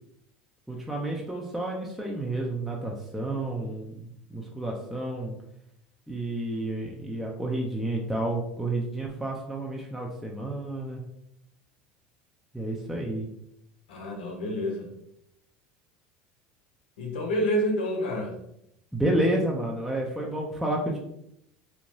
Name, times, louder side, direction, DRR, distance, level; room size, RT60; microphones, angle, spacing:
voice 1, 0.7-5.3 6.1-11.0 12.5-13.3 18.9-21.0, right 1 dB, ahead, -2 dB, 0.5 m, -30 dB
voice 2, 13.9-14.9 17.0-18.3, equal, 85° left, 1 dB, 0.7 m, -28 dB
2.9 x 2.1 x 2.6 m, 0.77 s
hypercardioid pair, 90°, 5 cm